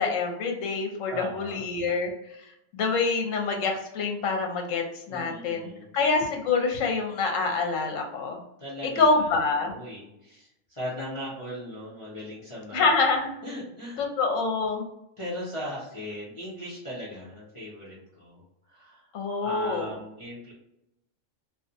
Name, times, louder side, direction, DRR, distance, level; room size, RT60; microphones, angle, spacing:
voice 1, 0.0-2.1 2.7-5.7 5.9-8.4 9.0-9.7 12.7-13.3 14.0-14.8 19.1-19.9, left 4 dB, 80° left, 2 dB, 1.0 m, -26 dB
voice 2, 1.1-1.6 5.1-5.9 8.6-9.3 9.6-12.9 13.4-14.0 15.2-18.4 18.7-19.1 19.4-20.5, equal, 35° left, -8 dB, 0.6 m, -38 dB
2.5 x 2.3 x 2.5 m, 0.85 s
omnidirectional pair, 1.3 m